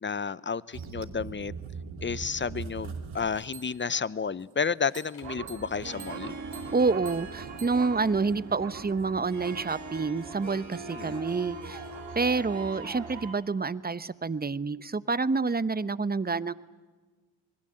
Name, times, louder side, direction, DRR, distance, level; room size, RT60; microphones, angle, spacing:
voice 1, 0.0-1.5 2.0-6.4 10.9-11.2, left 5 dB, 25° left, 19 dB, 0.8 m, -31 dB
sound 1, 0.7-4.1 4.9-13.4, right 5 dB, 70° right, 2.8 m, -42 dB
sound 2, 4.8-6.3, left 5 dB, 70° left, 6.3 m, -59 dB
Harp, 5.6-13.5, right 3 dB, 35° right, 2.6 m, -43 dB
voice 2, 6.7-11.8 12.1-16.5, right 4 dB, 20° right, 16 dB, 0.9 m, -28 dB
27.0 x 20.5 x 7.8 m, 1.3 s
supercardioid pair, 50°, 48 cm